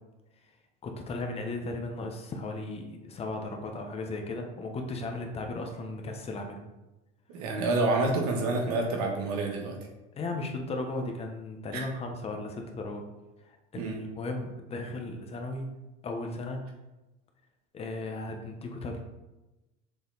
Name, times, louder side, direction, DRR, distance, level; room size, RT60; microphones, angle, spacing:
voice 1, 0.8-6.6 10.2-13.0 13.4-15.7 16.0-16.6 17.7-19.0, left 2 dB, 30° left, 3 dB, 1.1 m, -36 dB
voice 2, 7.3-9.8 11.7-11.8 13.7-14.0, right 2 dB, 80° right, 0 dB, 1.6 m, -28 dB
7.0 x 3.3 x 4.0 m, 1.0 s
supercardioid pair, 110°, 20 cm